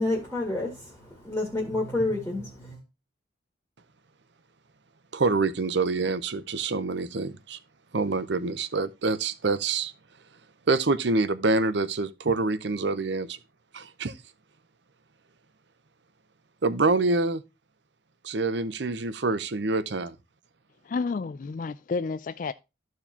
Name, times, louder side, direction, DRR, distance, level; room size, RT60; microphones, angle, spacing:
voice 1, 0.0-2.8, left 2 dB, 10° left, 1.7 m, -29 dB
voice 2, 5.1-7.6 7.9-9.9 10.7-13.4 13.7-14.1 16.6-17.4 18.2-20.2, right 3 dB, 60° right, 0.7 m, -26 dB
voice 3, 20.9-22.5, left 4 dB, 40° left, 0.3 m, -30 dB
14.0 x 4.7 x 2.8 m
head